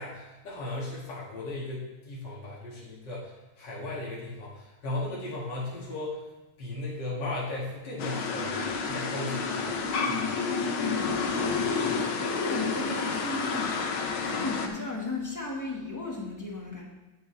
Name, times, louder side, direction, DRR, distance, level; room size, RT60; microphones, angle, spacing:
voice 1, 0.0-6.2 6.6-9.7 10.0-10.3, left 2 dB, 60° left, -7 dB, 2.8 m, -36 dB
OM-FR-toilet, 8.0-14.7, left 4 dB, 90° left, 1.9 m, -30 dB
voice 2, 10.0-13.9 14.2-16.8, left 3 dB, 10° left, -3 dB, 1.6 m, -36 dB
17.5 x 6.0 x 3.4 m, 1.1 s
omnidirectional pair, 2.2 m